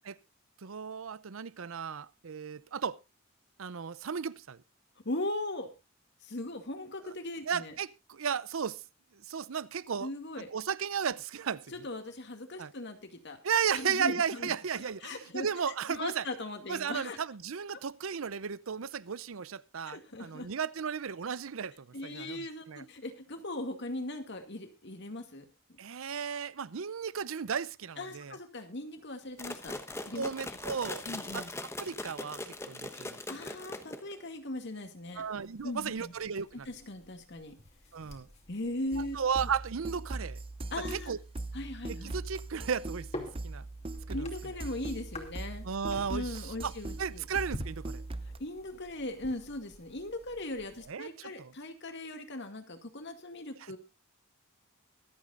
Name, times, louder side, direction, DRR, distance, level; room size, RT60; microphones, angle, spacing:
voice 1, 0.6-3.0 3.6-4.6 7.0-7.1 7.5-8.8 9.1-10.1 10.5-11.7 12.6-12.7 13.4-16.3 16.7-22.8 25.8-28.4 30.1-31.1 31.3-31.4 31.8-33.2 35.2-36.7 37.9-38.3 39.0-40.4 40.9-41.2 42.0-43.6 44.1-44.3 45.6-46.7 47.0-48.0 50.9-51.5, right 6 dB, 75° right, 0.6 m, -35 dB
voice 2, 5.0-5.7 6.2-7.8 10.0-10.5 11.7-13.4 13.7-14.5 15.0-15.5 15.9-17.2 19.9-20.5 21.9-25.8 28.0-29.8 30.1-30.6 31.1-31.5 32.9-35.2 35.6-36.1 36.7-37.6 38.5-39.2 40.7-41.1 41.5-42.1 44.1-45.7 46.1-47.2 48.4-53.8, left 1 dB, 55° left, 2.2 m, -39 dB
sound 1, 29.4-34.3, left 2 dB, 15° left, 1.0 m, -41 dB
sound 2, 35.2-50.9, left 1 dB, 30° left, 2.7 m, -49 dB
sound 3, 38.9-48.4, right 2 dB, 25° right, 0.6 m, -40 dB
24.0 x 8.4 x 2.5 m
head